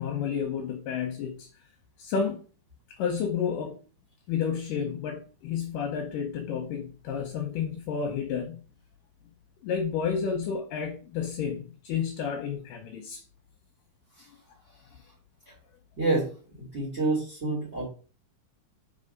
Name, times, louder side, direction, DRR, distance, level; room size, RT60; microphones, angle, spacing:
voice 1, 0.0-1.5 2.0-2.4 3.0-3.8 4.3-8.6 9.6-13.2, left 7 dB, 75° left, 2.2 m, -31 dB
voice 2, 16.0-16.3 16.7-17.8, right 2 dB, 20° right, 2.5 m, -27 dB
5.5 x 4.8 x 5.3 m
omnidirectional pair, 4.3 m